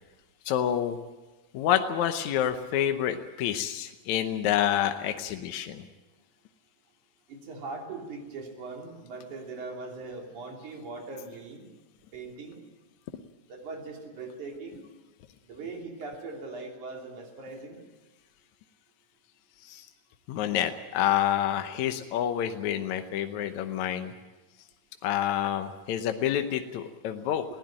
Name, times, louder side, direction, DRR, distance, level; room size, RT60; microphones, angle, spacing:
voice 1, 0.5-1.0 1.5-5.8 19.6-19.9 20.3-24.1 25.0-27.4, left 10 dB, 75° left, 7 dB, 2.2 m, -28 dB
voice 2, 7.3-11.7 12.1-12.7 13.5-14.8 15.4-17.8, right 3 dB, 80° right, 1 dB, 4.5 m, -40 dB
21.0 x 16.5 x 8.8 m, 1.1 s
omnidirectional pair, 3.4 m